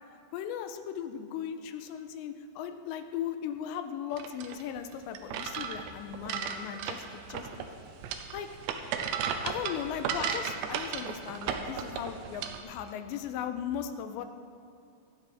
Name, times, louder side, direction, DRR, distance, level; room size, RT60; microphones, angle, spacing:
voice 1, 0.3-7.0 7.3-7.5 8.3-8.5 9.4-14.3, left 9 dB, 85° left, 8 dB, 2.8 m, -37 dB
sound 1, 4.1-12.6, right 7 dB, 80° right, 2.8 m, -35 dB
24.5 x 9.9 x 3.6 m, 2.4 s
omnidirectional pair, 5.2 m